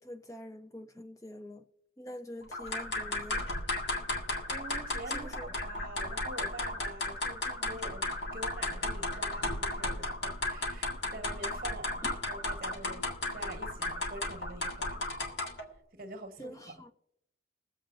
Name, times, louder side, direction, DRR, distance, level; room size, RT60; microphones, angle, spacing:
voice 1, 0.0-1.7 2.0-3.5 5.1-5.5 12.0-12.1 16.4-16.9, equal, 20° left, 0.5 m, -45 dB
sound 1, 2.5-15.7, left 2 dB, 75° left, 1.7 m, -35 dB
voice 2, 4.4-15.1 15.9-16.7, right 2 dB, 50° right, 1.2 m, -46 dB
22.0 x 7.6 x 2.6 m
head